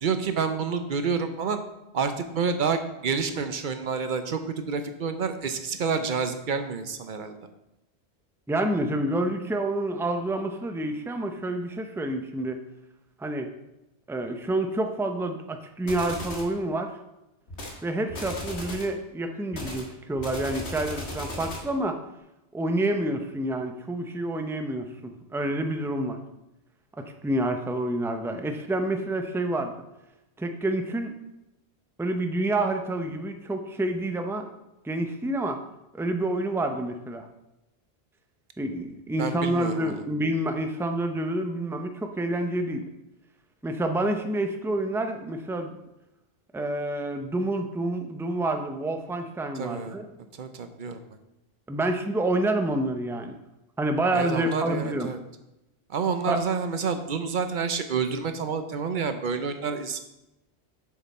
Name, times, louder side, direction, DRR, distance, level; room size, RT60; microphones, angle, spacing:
voice 1, 0.0-1.6 1.9-7.4 39.2-40.0 49.5-50.0 50.4-51.0 54.1-55.2 55.9-60.0, right 5 dB, 55° right, 8 dB, 0.7 m, -28 dB
voice 2, 8.5-12.6 13.2-13.5 14.1-16.9 17.8-22.0 22.5-26.2 27.0-29.7 30.4-31.1 32.0-34.4 34.8-35.6 35.9-37.3 38.6-42.8 43.6-45.7 46.5-50.1 51.7-53.4 53.8-55.1 56.3-56.4, right 1 dB, 5° right, 5 dB, 0.3 m, -28 dB
sound 1, 15.9-16.5 17.5-17.8 18.1-18.9 19.5-21.7, left 1 dB, 70° left, 1.8 m, -36 dB
6.9 x 6.7 x 4.1 m, 0.93 s
omnidirectional pair, 1.1 m